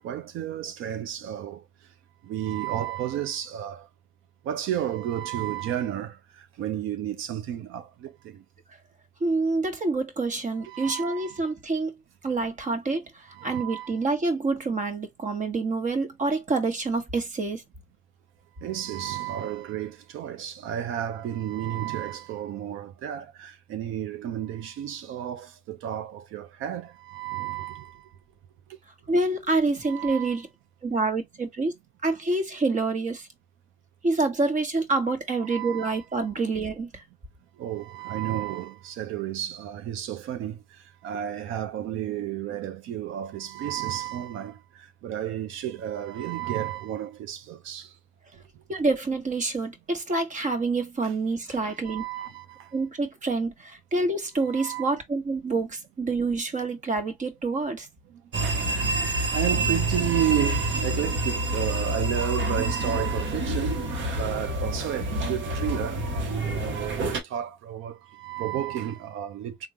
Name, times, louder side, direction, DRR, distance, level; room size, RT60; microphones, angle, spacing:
voice 1, 0.0-1.6 2.2-3.9 4.4-8.4 10.6-11.5 13.3-13.9 18.6-28.1 29.8-30.4 35.4-36.0 37.6-40.6 41.0-47.9 51.0-51.1 51.5-52.7 54.4-54.8 58.1-58.2 59.1-63.9 64.1-66.0 66.5-69.7, right 11 dB, 90° right, 0.6 m, -32 dB
voice 2, 9.2-11.9 12.2-17.6 29.1-30.5 30.8-31.7 32.0-33.3 34.0-37.0 48.7-52.1 52.7-57.9 59.7-59.8, right 3 dB, 40° right, 1.2 m, -27 dB
sound 1, 58.3-67.2, right 2 dB, 70° right, 1.0 m, -27 dB
3.7 x 2.3 x 2.9 m
cardioid pair, 90°, 20 cm